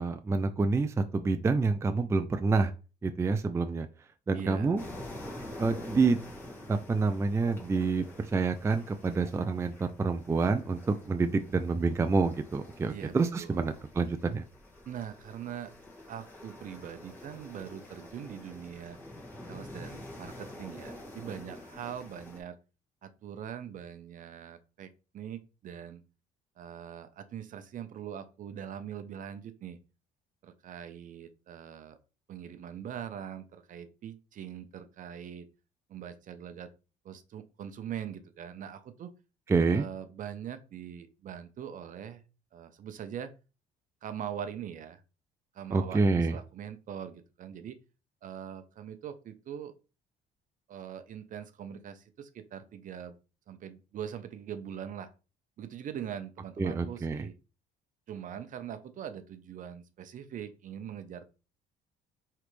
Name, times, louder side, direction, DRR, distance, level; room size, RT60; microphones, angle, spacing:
voice 1, 0.0-2.7 3.0-3.9 4.3-4.8 5.6-6.2 6.7-8.0 8.3-14.4 39.5-39.9 45.7-46.4 56.6-57.2, right 4 dB, 15° right, 8 dB, 0.4 m, -27 dB
voice 2, 4.3-4.8 12.9-13.6 14.9-15.7 16.1-19.0 19.5-22.6 23.0-26.0 26.6-29.8 30.4-32.0 32.3-35.5 35.9-36.7 37.0-39.1 39.7-42.2 42.5-43.3 44.0-45.0 45.5-47.8 48.2-49.7 50.7-53.2 53.5-55.1 55.6-57.3 58.1-61.2, right 9 dB, 50° right, 11 dB, 0.6 m, -42 dB
sound 1, 4.8-22.4, left 1 dB, 10° left, 2.0 m, -47 dB
4.9 x 3.3 x 3.1 m, 0.32 s
cardioid pair, 110°, 17 cm